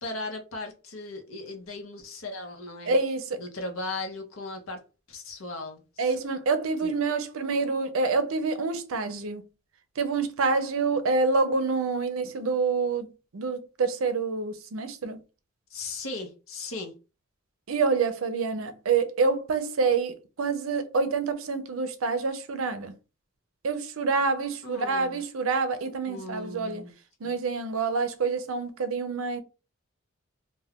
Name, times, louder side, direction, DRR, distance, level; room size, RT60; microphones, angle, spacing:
voice 1, 0.0-3.0 3.4-4.8 5.1-6.1 6.8-6.9 15.7-16.9 24.6-25.2 26.1-26.9 27.2-27.3, left 2 dB, 80° left, 0.8 m, -37 dB
voice 2, 2.9-3.4 6.0-9.4 10.0-15.2 17.7-22.9 23.6-26.8 27.2-29.4, right 4 dB, 80° right, 0.5 m, -27 dB
2.3 x 2.2 x 3.5 m
head